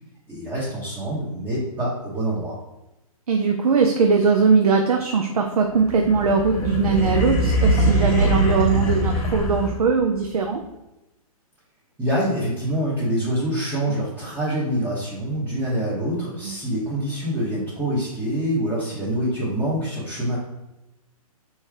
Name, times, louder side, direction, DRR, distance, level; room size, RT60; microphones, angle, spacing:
voice 1, 0.3-2.6 12.0-20.4, right 1 dB, 10° right, -9 dB, 1.2 m, -25 dB
voice 2, 3.3-10.6, right 5 dB, 75° right, 3 dB, 0.7 m, -20 dB
sound 1, 5.8-10.0, right 1 dB, 20° left, 1.1 m, -22 dB
4.4 x 3.2 x 3.6 m, 0.95 s
hypercardioid pair, 150°, 19 cm